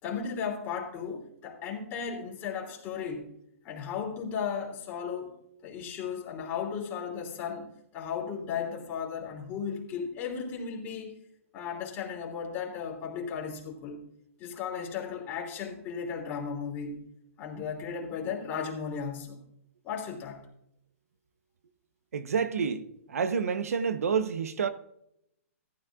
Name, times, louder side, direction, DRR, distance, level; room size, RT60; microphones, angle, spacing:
voice 1, 0.0-3.3 3.6-5.3 5.6-7.7 7.9-11.2 11.5-14.0 14.4-17.0 17.4-19.4 19.8-20.5, left 6 dB, 25° left, 2.9 m, -35 dB
voice 2, 22.1-24.7, right 6 dB, 85° right, 0.9 m, -29 dB
14.5 x 13.0 x 2.4 m
hypercardioid pair, 150°, 8 cm